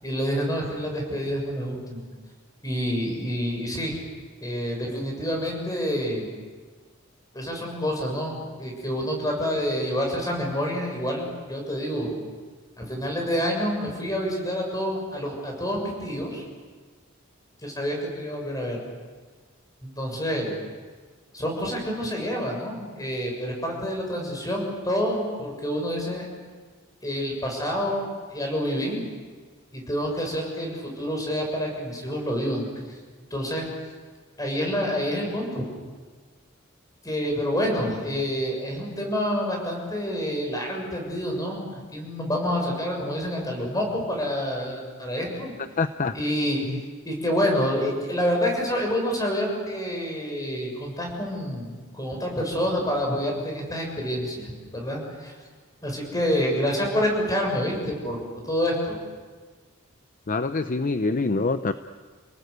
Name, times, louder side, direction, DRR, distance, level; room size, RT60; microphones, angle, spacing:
voice 1, 0.0-2.0 2.6-4.0 4.4-6.3 7.3-12.1 12.8-16.4 17.6-18.8 19.8-20.6 21.3-26.2 27.0-28.1 28.3-29.0 29.7-32.7 33.3-33.7 34.4-35.6 37.0-45.5 46.1-46.6 47.1-55.3 55.8-59.0, equal, 20° left, 1 dB, 7.0 m, -28 dB
voice 2, 45.8-46.1 46.7-46.8 60.3-61.7, left 3 dB, 40° left, 10 dB, 0.6 m, -25 dB
30.0 x 18.5 x 8.2 m, 1.5 s
head